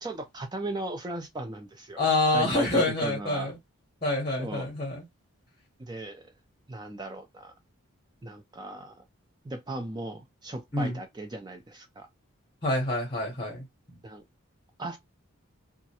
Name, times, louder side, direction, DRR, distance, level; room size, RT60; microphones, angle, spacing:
voice 1, 0.0-2.0 2.3-3.5 4.4-4.7 5.8-6.3 6.7-7.5 8.2-9.0 9.4-12.1 14.0-14.2 14.8-15.0, right 2 dB, 20° right, 0.4 m, -37 dB
voice 2, 2.0-3.5 4.0-5.0 10.7-11.0 12.6-13.6, left 2 dB, 25° left, 0.8 m, -26 dB
2.3 x 2.1 x 2.8 m
head